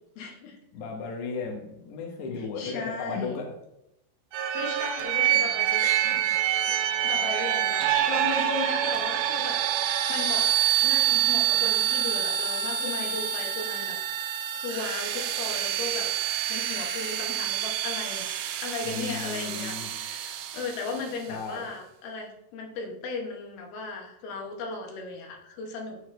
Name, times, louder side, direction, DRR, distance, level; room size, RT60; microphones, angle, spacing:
voice 1, 0.2-0.6 2.4-3.4 4.5-6.2 6.8-9.6 10.1-10.5 10.8-14.0 14.5-16.1 16.5-18.3 18.6-26.0, left 4 dB, 85° left, 1 dB, 3.0 m, -36 dB
voice 2, 0.7-3.5 6.7-7.0 18.8-19.9 21.3-21.7, left 5 dB, 65° left, 1 dB, 2.3 m, -35 dB
sound 1, 4.3-21.1, right 11 dB, 80° right, 1.9 m, -27 dB
11.5 x 4.1 x 3.2 m, 0.84 s
omnidirectional pair, 4.3 m